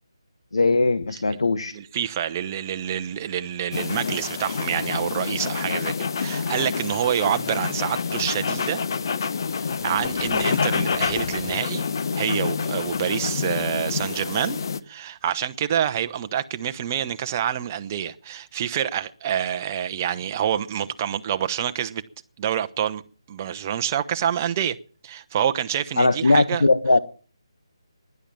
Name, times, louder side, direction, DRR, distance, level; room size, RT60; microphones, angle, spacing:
voice 1, 0.5-1.7 26.0-27.0, left 3 dB, 75° left, 1.2 m, -19 dB
voice 2, 1.7-8.8 9.6-11.9 12.2-14.6 14.9-22.0 22.4-23.0 23.3-24.8 25.0-26.6, right 10 dB, 25° right, 0.9 m, -27 dB
sound 1, 3.7-14.8, left 5 dB, 50° left, 0.9 m, -27 dB
16.0 x 11.0 x 7.3 m
figure-of-eight pair, 155°, 3 cm